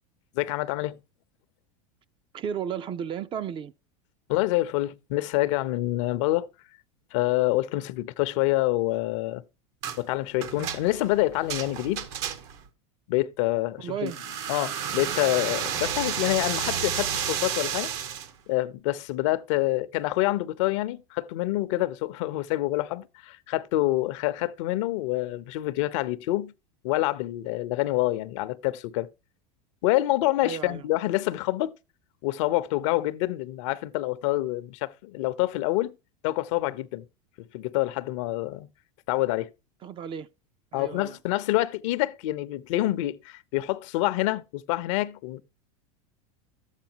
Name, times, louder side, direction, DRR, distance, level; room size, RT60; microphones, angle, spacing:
voice 1, 0.3-1.0 4.3-6.5 7.1-9.4 10.0-12.1 13.1-14.1 14.5-17.9 18.5-26.5 26.8-29.1 29.8-31.7 32.2-35.9 36.2-37.0 37.5-38.7 39.1-39.5 40.7-45.4, left 17 dB, 65° left, 0.7 m, -27 dB
voice 2, 2.3-3.7 13.8-14.2 30.4-30.9 39.8-40.3 40.7-41.2, right 8 dB, 30° right, 0.5 m, -34 dB
Click Clack and Delay, 9.8-10.0 10.4-12.7 14.1-18.3, right 8 dB, 60° right, 1.2 m, -31 dB
11.5 x 8.2 x 2.9 m
supercardioid pair, 120°, 17 cm